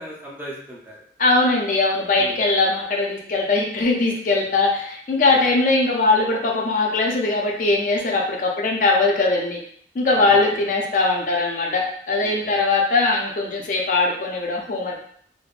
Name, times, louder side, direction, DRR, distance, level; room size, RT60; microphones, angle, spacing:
voice 1, 0.0-1.0 2.2-2.4 5.2-5.5 10.1-10.6 12.2-12.6, equal, 10° right, -4 dB, 0.4 m, -38 dB
voice 2, 1.2-9.6 9.9-15.0, left 3 dB, 45° left, 0 dB, 0.4 m, -20 dB
3.2 x 2.0 x 2.4 m, 0.62 s
head